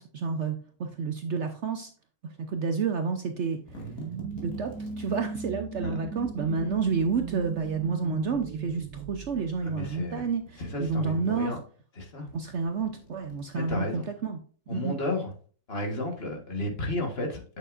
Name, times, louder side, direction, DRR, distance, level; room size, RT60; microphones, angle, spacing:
voice 1, 0.0-1.9 2.2-3.6 4.4-11.6 12.3-14.4 14.7-14.9, right 5 dB, 60° right, 6 dB, 0.9 m, -30 dB
sound 1, 3.3-5.3 6.1-7.7 8.6-9.7 10.1-11.6 12.2-14.0, left 2 dB, 65° left, 2.3 m, -50 dB
sound 2, 3.7-10.2, right 6 dB, 90° right, 1.3 m, -38 dB
voice 2, 9.6-10.3 10.6-11.6 12.0-12.3 13.5-14.0 14.7-15.3 15.7-17.6, left 1 dB, 40° left, 2 dB, 1.6 m, -32 dB
8.2 x 6.7 x 2.5 m, 0.42 s
omnidirectional pair, 1.6 m